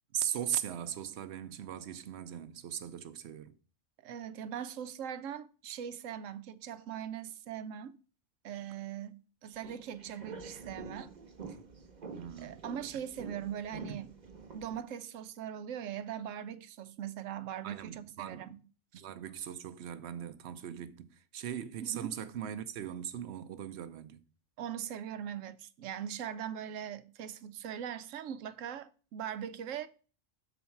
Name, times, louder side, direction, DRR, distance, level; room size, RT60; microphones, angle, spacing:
voice 1, 0.1-3.5 12.1-12.6 13.9-14.1 17.6-18.6 18.9-24.2, right 10 dB, 65° right, 0.9 m, -39 dB
voice 2, 4.0-8.0 8.4-11.1 12.4-14.1 14.5-18.6 18.9-19.1 21.8-22.1 24.6-29.9, right 9 dB, 90° right, 1.0 m, -41 dB
sound 1, 9.6-14.8, right 4 dB, 40° right, 1.0 m, -47 dB
7.0 x 4.2 x 5.8 m
omnidirectional pair, 1.3 m